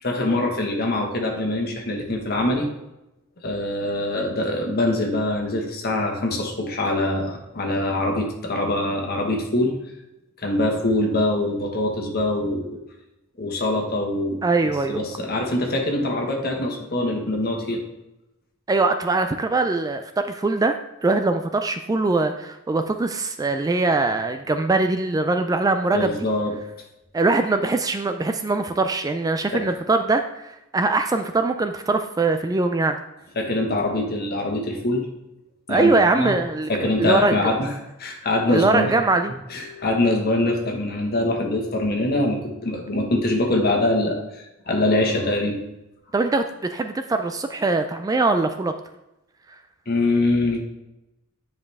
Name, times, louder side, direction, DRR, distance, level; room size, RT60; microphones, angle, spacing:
voice 1, 0.0-2.7 3.4-9.7 10.4-12.8 13.4-14.4 14.9-17.8 25.9-26.5 29.5-29.6 33.3-35.1 35.7-36.4 36.7-37.7 38.0-38.9 39.5-45.6 49.9-50.6, left 1 dB, 50° left, 1 dB, 1.5 m, -23 dB
voice 2, 14.4-15.0 18.7-26.2 27.1-33.0 35.7-37.5 38.5-39.3 46.1-48.7, right 3 dB, 15° right, 8 dB, 0.3 m, -22 dB
9.6 x 5.1 x 3.5 m, 0.91 s
head